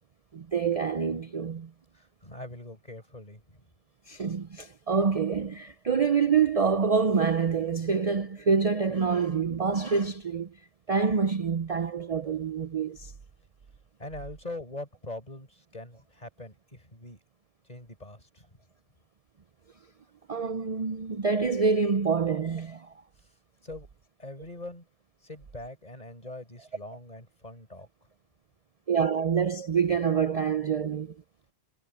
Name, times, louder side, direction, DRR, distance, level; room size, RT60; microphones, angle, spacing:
voice 1, 0.3-1.7 4.1-10.5 10.9-13.1 20.3-22.9 28.9-31.1, right 5 dB, 40° right, 0.7 m, -26 dB
voice 2, 1.9-3.6 14.0-17.2 17.7-18.5 23.6-23.9 24.2-24.8 25.2-27.9, left 2 dB, 35° left, 5.1 m, -42 dB
omnidirectional pair, 1.1 m